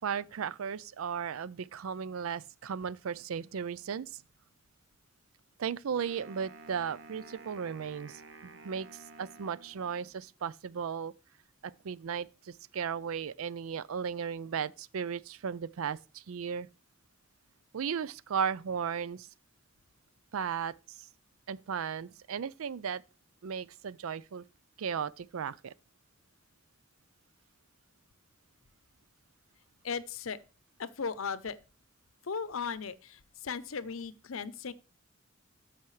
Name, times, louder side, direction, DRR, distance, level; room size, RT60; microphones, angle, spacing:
voice 1, 0.0-4.2 5.6-11.1 11.6-16.7 17.7-19.3 20.3-20.7 21.5-23.0 23.4-24.4 24.8-25.7, right 7 dB, 85° right, 0.4 m, -36 dB
Wind instrument woodwind instrument, 6.0-10.2, right 3 dB, 60° right, 0.9 m, -52 dB
voice 2, 29.8-30.4 30.8-31.6 32.2-34.7, left 5 dB, 80° left, 0.7 m, -37 dB
14.0 x 5.8 x 3.3 m
head